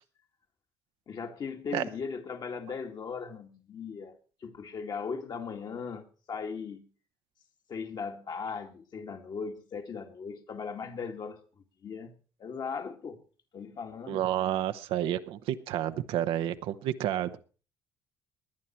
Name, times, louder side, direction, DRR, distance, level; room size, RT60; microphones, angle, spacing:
voice 1, 1.1-4.1 4.4-6.9 7.7-11.4 11.8-13.2 13.5-14.3, left 5 dB, 50° left, 2.2 m, -38 dB
voice 2, 14.1-17.4, right 12 dB, 75° right, 1.0 m, -30 dB
20.5 x 9.5 x 4.4 m
supercardioid pair, 75°, 9 cm